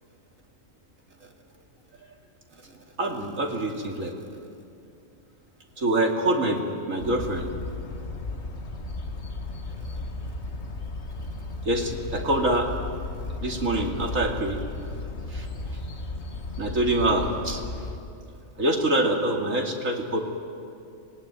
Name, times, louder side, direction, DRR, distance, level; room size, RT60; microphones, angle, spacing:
voice 1, 3.0-4.1 5.8-7.5 11.6-12.7 13.4-14.6 15.3-15.5 16.6-17.6 18.6-20.2, right 1 dB, 85° right, 1 dB, 2.9 m, -25 dB
sound 1, 7.0-18.0, left 2 dB, 55° left, 1.8 m, -35 dB
25.5 x 20.0 x 9.4 m, 2.5 s
omnidirectional pair, 1.3 m